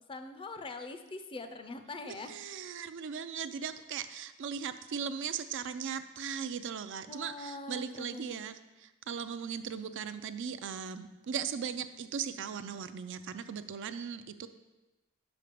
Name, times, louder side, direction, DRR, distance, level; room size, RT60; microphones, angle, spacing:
voice 1, 0.1-2.4 7.1-8.4, left 2 dB, 25° left, 8 dB, 0.5 m, -43 dB
voice 2, 2.1-8.5 9.1-14.5, right 7 dB, 60° right, 10 dB, 0.4 m, -38 dB
5.7 x 5.2 x 6.7 m, 1.1 s
head